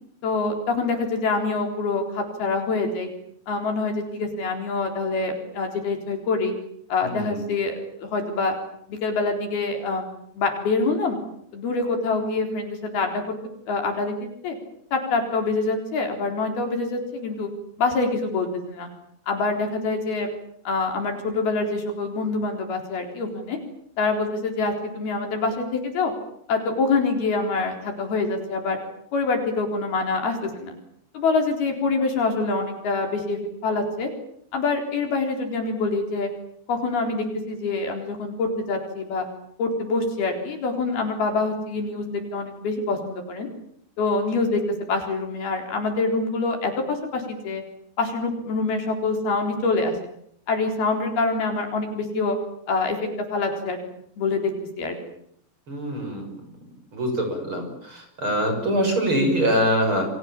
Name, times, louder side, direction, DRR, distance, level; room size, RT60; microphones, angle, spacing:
voice 1, 0.2-3.1 3.5-6.5 6.9-8.5 8.9-10.1 10.4-11.2 11.5-13.4 13.7-14.6 14.9-17.5 17.8-18.9 19.3-20.3 20.7-23.6 24.0-26.1 26.5-28.8 29.1-30.7 31.1-34.1 34.5-36.3 36.7-39.3 39.6-43.5 44.0-44.6 44.9-47.6 48.0-49.9 50.5-52.4 52.7-53.8 54.2-54.5 54.8-55.0, left 3 dB, 60° left, 4 dB, 5.8 m, -25 dB
voice 2, 7.0-7.3 55.7-56.3 56.9-60.1, equal, 30° right, 4 dB, 6.9 m, -24 dB
29.5 x 24.0 x 7.4 m, 0.68 s
omnidirectional pair, 5.1 m